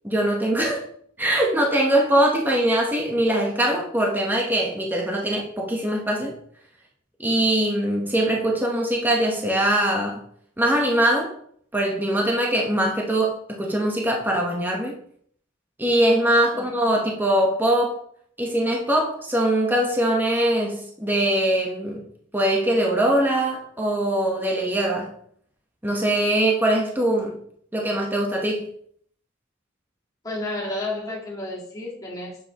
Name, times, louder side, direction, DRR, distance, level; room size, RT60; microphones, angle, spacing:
voice 1, 0.0-0.8 1.2-6.3 7.2-10.2 10.6-11.3 11.7-15.0 15.8-17.9 18.4-22.0 22.3-25.1 25.8-27.4 27.7-28.7, right 1 dB, 10° right, -1 dB, 1.0 m, -22 dB
voice 2, 30.2-32.4, left 2 dB, 20° left, -5 dB, 1.9 m, -31 dB
7.7 x 6.2 x 2.9 m, 0.63 s
head